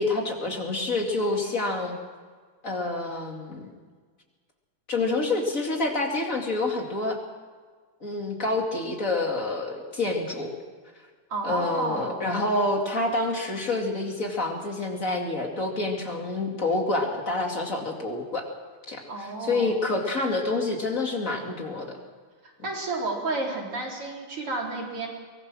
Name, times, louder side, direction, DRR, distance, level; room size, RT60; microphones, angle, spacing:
voice 1, 0.0-2.0 2.6-3.7 4.9-7.2 8.0-10.5 11.4-18.5 18.9-21.9, left 2 dB, 35° left, 1 dB, 2.8 m, -27 dB
voice 2, 11.3-12.3 19.1-19.7 22.6-25.1, right 2 dB, 90° right, -2 dB, 5.0 m, -31 dB
23.5 x 19.5 x 6.3 m, 1.5 s
omnidirectional pair, 2.4 m